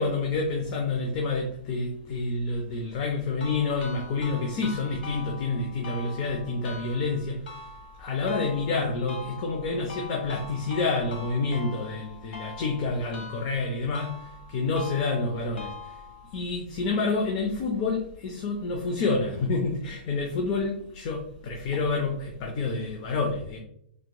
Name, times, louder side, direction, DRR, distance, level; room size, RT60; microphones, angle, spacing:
voice 1, 0.0-7.7 8.0-16.0 16.3-23.6, left 3 dB, 30° left, 0.4 m, -28 dB
sound 1, 3.4-16.4, left 4 dB, 85° left, 1.5 m, -43 dB
3.5 x 2.9 x 2.2 m
hypercardioid pair, 160°, 6 cm